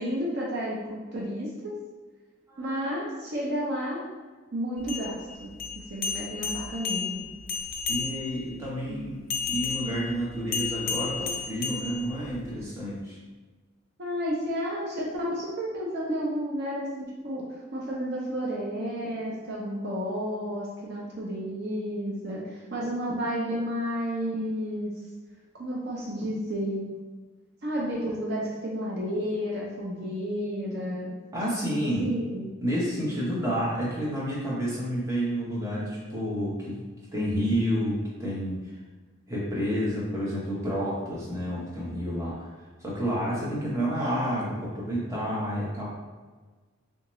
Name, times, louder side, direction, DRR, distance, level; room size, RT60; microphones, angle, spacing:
voice 1, 0.0-1.8 2.6-4.0 4.5-5.5 5.9-7.3 8.9-9.0 14.0-25.0 25.5-26.9 27.6-31.1 32.0-32.5, equal, 50° right, -3 dB, 0.6 m, -31 dB
sound 1, 4.8-8.5 9.3-12.5, left 6 dB, 45° left, 0.4 m, -33 dB
voice 2, 7.9-9.2 9.5-13.2 31.3-32.1 32.6-38.8 39.3-42.5 42.8-45.8, equal, 15° right, -6 dB, 0.8 m, -30 dB
3.4 x 2.8 x 3.0 m, 1.3 s
head